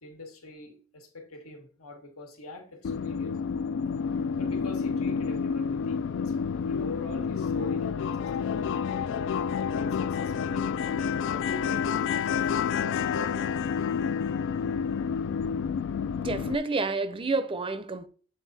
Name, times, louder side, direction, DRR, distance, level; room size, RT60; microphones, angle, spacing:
voice 1, 0.0-3.4 4.4-6.4 6.6-9.1 9.7-12.0 12.3-13.4, left 2 dB, 85° left, 1.7 m, -43 dB
sound 1, 2.8-16.6, left 6 dB, 60° left, 0.3 m, -29 dB
voice 2, 16.2-18.1, right 3 dB, 25° right, 0.5 m, -29 dB
8.0 x 4.0 x 4.1 m
head